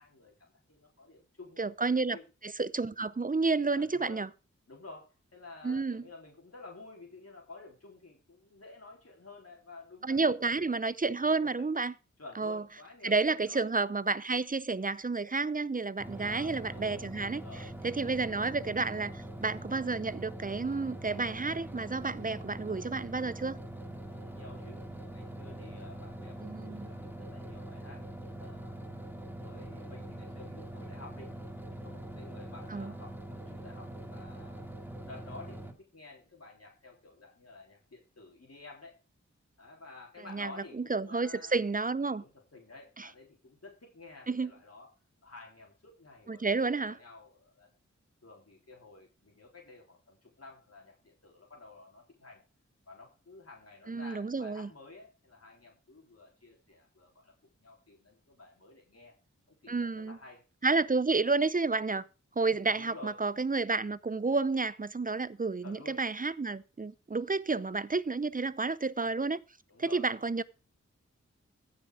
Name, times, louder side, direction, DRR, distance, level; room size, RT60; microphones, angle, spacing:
voice 1, 0.0-1.6 2.1-2.2 3.7-4.2 4.7-10.2 10.4-10.5 11.4-11.5 12.2-13.7 16.2-16.9 17.4-17.7 24.1-28.1 28.4-31.3 31.7-34.7 35.0-39.0 39.6-41.6 42.1-44.9 45.2-47.7 48.2-52.4 52.9-59.1 59.5-60.4 62.6-63.2 65.6-66.0 69.7-70.1, left 3 dB, 55° left, 3.8 m, -52 dB
voice 2, 1.6-2.2 2.4-4.3 5.6-6.0 10.0-11.9 12.4-12.6 13.0-23.6 26.4-26.9 32.7-32.9 40.3-42.2 43.0-43.1 44.3-44.5 46.3-47.0 53.9-54.7 59.7-60.2 60.6-62.0 62.4-69.4 69.8-70.4, right 3 dB, 30° right, 0.6 m, -31 dB
sound 1, 16.0-35.7, right 1 dB, 5° right, 2.0 m, -43 dB
15.0 x 5.8 x 4.9 m
wide cardioid pair, 55°, 29 cm